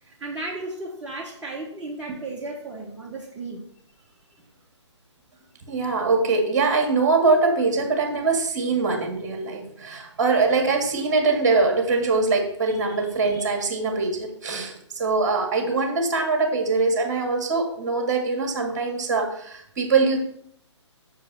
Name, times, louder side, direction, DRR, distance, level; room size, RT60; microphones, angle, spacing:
voice 1, 0.0-3.7, right 2 dB, 10° right, -5 dB, 0.8 m, -34 dB
voice 2, 5.7-14.7 15.0-20.2, right 4 dB, 35° right, 3 dB, 1.7 m, -23 dB
6.7 x 4.7 x 5.4 m, 0.68 s
figure-of-eight pair, 135°, 15 cm